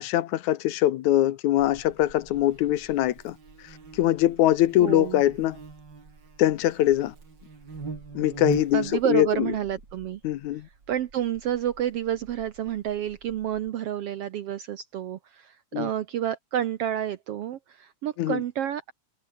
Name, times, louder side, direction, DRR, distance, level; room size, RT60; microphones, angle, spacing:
voice 1, 0.0-3.4 3.9-5.6 6.4-7.1 8.2-9.5 10.2-10.7 15.7-15.9 18.2-18.4, left 14 dB, 75° left, 2.2 m, -23 dB
Buzz, 1.6-13.7, right 4 dB, 35° right, 3.8 m, -41 dB
voice 2, 4.8-5.2 8.7-10.2 10.9-18.9, right 11 dB, 70° right, 1.5 m, -29 dB
omnidirectional pair, 3.6 m